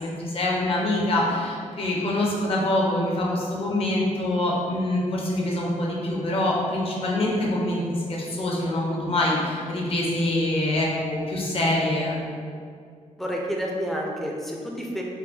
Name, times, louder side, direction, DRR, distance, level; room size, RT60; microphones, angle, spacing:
voice 1, 0.0-12.2, left 1 dB, 50° left, -3 dB, 0.7 m, -25 dB
voice 2, 13.2-15.0, equal, ahead, -2 dB, 0.4 m, -29 dB
4.6 x 2.1 x 2.7 m, 2.2 s
wide cardioid pair, 155°, 13 cm